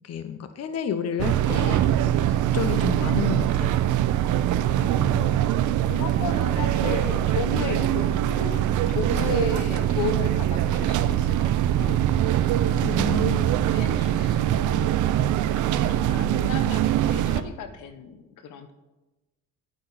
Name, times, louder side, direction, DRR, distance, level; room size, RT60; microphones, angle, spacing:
voice 1, 0.0-3.8 12.8-13.5, left 7 dB, 55° left, 10 dB, 0.8 m, -31 dB
sound 1, 1.2-17.4, right 11 dB, 80° right, 0.6 m, -23 dB
voice 2, 4.7-5.6 5.8-13.4 13.7-15.0 15.6-18.7, left 6 dB, 80° left, 9 dB, 1.0 m, -35 dB
11.0 x 8.6 x 4.1 m, 1.1 s
cardioid pair, 90°, 30 cm